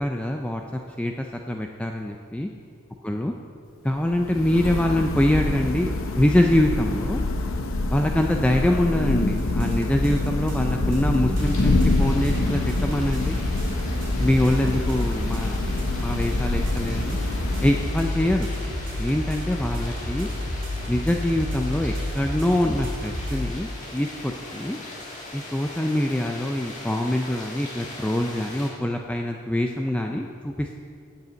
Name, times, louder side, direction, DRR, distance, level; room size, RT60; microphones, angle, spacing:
voice 1, 0.0-2.5 3.0-3.3 3.8-7.2 7.9-13.4 14.2-15.6 16.0-17.2 17.6-18.5 19.0-20.3 20.9-24.8 25.3-30.8, left 1 dB, 5° left, 2 dB, 0.3 m, -24 dB
Thunder / Rain, 4.0-18.3, left 2 dB, 70° left, 0.7 m, -26 dB
sound 1, 9.4-23.5, left 1 dB, 55° right, 2.9 m, -30 dB
sound 2, 11.4-28.7, left 2 dB, 35° left, 1.7 m, -40 dB
7.9 x 7.5 x 8.1 m, 2.3 s
head